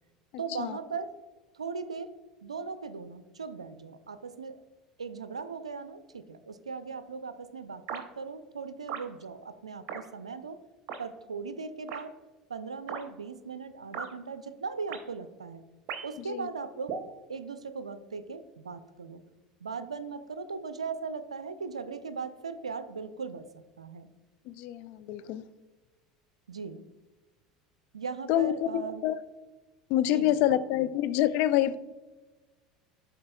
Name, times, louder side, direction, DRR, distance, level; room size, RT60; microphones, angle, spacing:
voice 1, 0.4-1.1 1.5-2.1 2.4-4.6 5.0-10.6 11.0-12.2 12.5-15.6 16.0-16.9 17.3-19.2 19.6-24.1 26.5-26.9 27.9-29.0 30.0-30.9, right 5 dB, 85° right, 12 dB, 0.4 m, -38 dB
sound 1, 7.9-8.1 8.9-9.1 9.9-10.0 10.9-11.0 11.9-12.0 12.9-13.0 13.9-14.1 14.9-15.0 15.9-16.2 16.9-17.1, right 6 dB, 50° right, 0.8 m, -37 dB
voice 2, 24.5-25.4 28.3-29.2 29.9-31.8, left 12 dB, 55° left, 14 dB, 0.3 m, -26 dB
11.5 x 3.9 x 2.3 m, 1.2 s
figure-of-eight pair, 75°, 3 cm